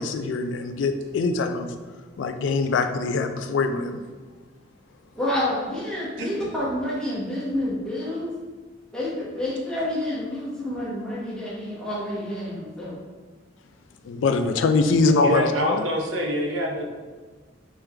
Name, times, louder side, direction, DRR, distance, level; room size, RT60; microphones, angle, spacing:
voice 1, 0.0-1.7 2.2-4.0 14.0-15.8, left 3 dB, 75° left, 7 dB, 0.3 m, -23 dB
voice 2, 5.1-8.3 8.9-13.0, left 1 dB, 5° left, -7 dB, 1.0 m, -28 dB
voice 3, 15.0-16.9, equal, 90° right, 2 dB, 0.6 m, -26 dB
3.4 x 3.2 x 3.3 m, 1.4 s
head